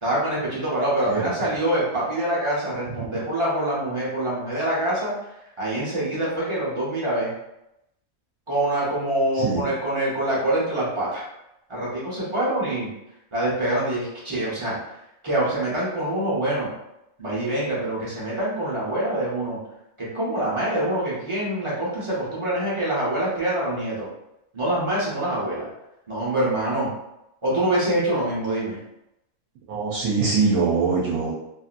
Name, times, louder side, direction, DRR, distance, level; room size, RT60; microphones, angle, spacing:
voice 1, 0.0-5.1 5.6-7.3 8.5-11.3 11.7-12.9 13.3-14.8 15.2-16.7 17.2-19.6 20.0-24.1 24.5-25.7 26.1-26.9 27.4-28.8, right 1 dB, 25° right, -7 dB, 0.9 m, -25 dB
voice 2, 9.3-9.7 29.7-31.3, right 4 dB, 80° right, -5 dB, 1.1 m, -23 dB
2.7 x 2.7 x 2.5 m, 0.86 s
omnidirectional pair, 1.5 m